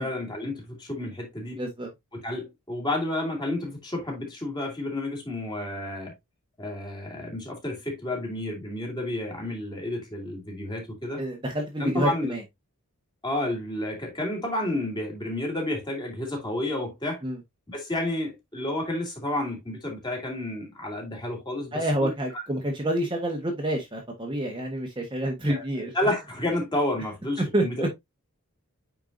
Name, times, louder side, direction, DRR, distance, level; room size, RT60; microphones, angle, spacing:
voice 1, 0.0-1.6 2.1-6.1 6.6-11.2 11.8-12.3 13.2-17.2 17.7-22.4 25.5-27.9, left 1 dB, 20° left, 2.6 m, -31 dB
voice 2, 1.5-1.9 11.2-12.4 17.2-17.4 21.7-25.9 27.5-27.9, right 1 dB, 20° right, 1.3 m, -28 dB
8.8 x 4.6 x 2.6 m
head